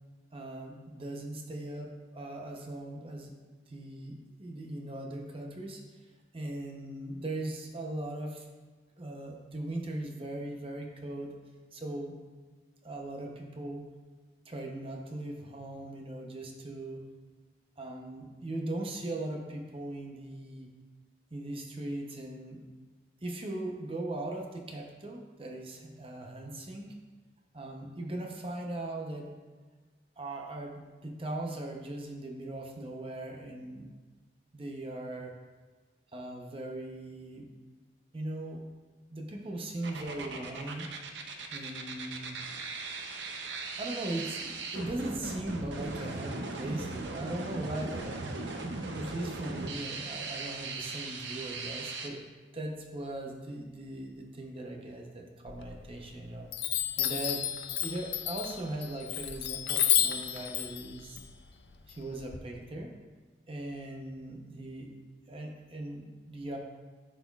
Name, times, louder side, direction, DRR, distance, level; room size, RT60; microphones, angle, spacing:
voice 1, 0.3-3.3 3.7-5.8 6.3-8.5 9.0-11.4 11.7-12.1 12.8-13.9 14.5-17.0 17.8-20.7 21.3-22.6 23.2-26.9 27.5-29.3 30.2-33.9 34.5-35.3 36.1-37.5 38.1-38.6 39.1-40.9 41.5-42.4 43.8-48.2 48.9-52.2 52.5-57.4 57.8-61.2 61.9-62.9 63.5-64.9 65.3-66.6, right 1 dB, 30° right, 1 dB, 0.7 m, -39 dB
sound 1, 39.8-52.1, right 3 dB, 80° right, 0.7 m, -38 dB
Chime, 55.5-56.1 56.5-62.4, left 11 dB, 65° left, 0.5 m, -31 dB
12.0 x 4.2 x 2.3 m, 1.4 s
head